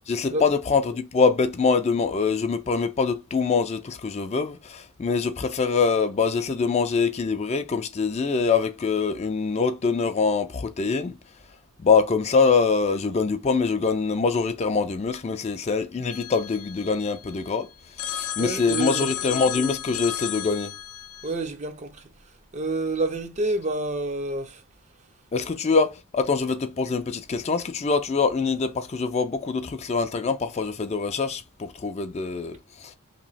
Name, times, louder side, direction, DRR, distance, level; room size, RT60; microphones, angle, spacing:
voice 1, 0.1-11.1 11.8-17.7 18.0-20.7 25.3-32.9, left 4 dB, 30° left, 0.3 m, -24 dB
Telephone, 16.1-17.5 18.0-21.3, left 11 dB, 85° left, 0.5 m, -33 dB
voice 2, 18.4-19.2 21.2-22.0 22.5-24.6, right 2 dB, 30° right, 0.5 m, -28 dB
3.0 x 2.7 x 4.0 m
head